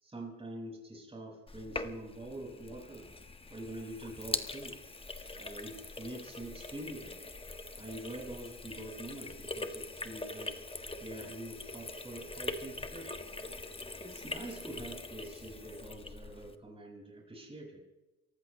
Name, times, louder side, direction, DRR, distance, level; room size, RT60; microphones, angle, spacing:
voice 1, 0.0-3.1 3.5-4.8 5.4-7.3 7.7-10.6 11.0-13.2 14.0-17.8, right 1 dB, 20° right, -1 dB, 5.8 m, -45 dB
Sink (filling or washing), 1.5-16.6, left 2 dB, 20° left, 1.4 m, -43 dB
29.5 x 15.0 x 3.2 m, 1.1 s
cardioid pair, 90°, 30 cm